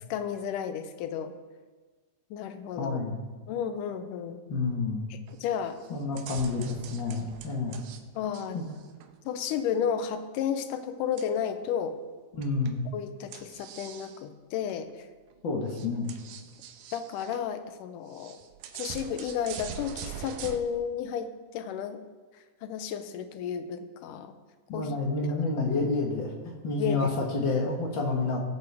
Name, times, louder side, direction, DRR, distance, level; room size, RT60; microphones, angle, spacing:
voice 1, 0.0-1.3 2.3-3.0 3.5-4.4 5.1-5.8 8.2-8.6 9.3-12.0 12.9-14.9 16.9-18.4 18.7-22.0 22.6-24.3 24.7-24.9 26.8-27.1, left 8 dB, 85° left, 9 dB, 2.3 m, -32 dB
voice 2, 2.8-3.2 4.5-5.1 5.9-7.8 8.5-8.6 12.3-12.8 15.4-16.1 24.7-28.4, left 3 dB, 45° left, 0 dB, 1.7 m, -29 dB
sound 1, 5.3-5.5 5.8-8.0 8.3-9.6 11.2-11.7 12.4-12.8 13.3-14.2 14.7-14.8 15.3-15.4 15.7-17.4 18.1-20.6, right 9 dB, 85° right, 2.2 m, -43 dB
19.0 x 8.0 x 3.5 m, 1.4 s
omnidirectional pair, 3.6 m